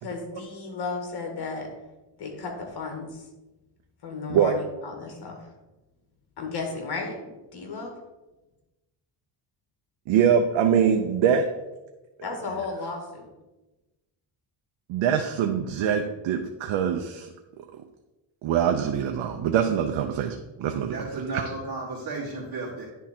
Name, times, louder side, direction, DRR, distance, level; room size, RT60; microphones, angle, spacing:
voice 1, 0.0-1.7 2.2-3.3 4.0-5.5 6.4-8.0 12.2-13.3, left 4 dB, 55° left, 3 dB, 1.8 m, -34 dB
voice 2, 10.1-11.5 14.9-17.3 17.6-17.7 18.4-21.1, right 8 dB, 85° right, 5 dB, 0.7 m, -23 dB
voice 3, 20.9-22.9, right 3 dB, 50° right, -6 dB, 2.0 m, -33 dB
10.0 x 3.7 x 4.3 m, 1.1 s
cardioid pair, 125°, 46 cm